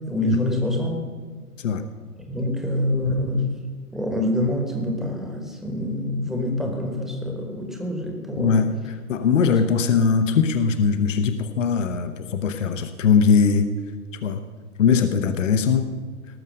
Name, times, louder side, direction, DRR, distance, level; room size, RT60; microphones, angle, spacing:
voice 1, 0.1-0.9 2.3-3.5 3.9-8.6 9.5-9.6, left 1 dB, ahead, 2 dB, 1.2 m, -26 dB
voice 2, 8.3-8.7 9.1-13.7 14.2-14.4 14.8-15.9, left 6 dB, 55° left, 9 dB, 0.9 m, -20 dB
18.5 x 6.5 x 6.4 m, 1.5 s
figure-of-eight pair, 120°, 46 cm